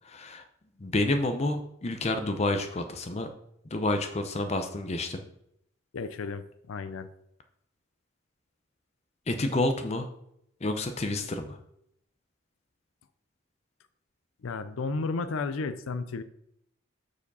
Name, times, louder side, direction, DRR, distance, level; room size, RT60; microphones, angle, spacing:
voice 1, 0.0-0.4 0.8-3.3 3.7-5.2 9.3-10.1 10.6-11.6, left 2 dB, 30° left, 7 dB, 0.6 m, -29 dB
voice 2, 5.9-7.1 14.4-16.2, left 4 dB, 80° left, 12 dB, 0.5 m, -33 dB
6.9 x 4.9 x 5.4 m, 0.75 s
head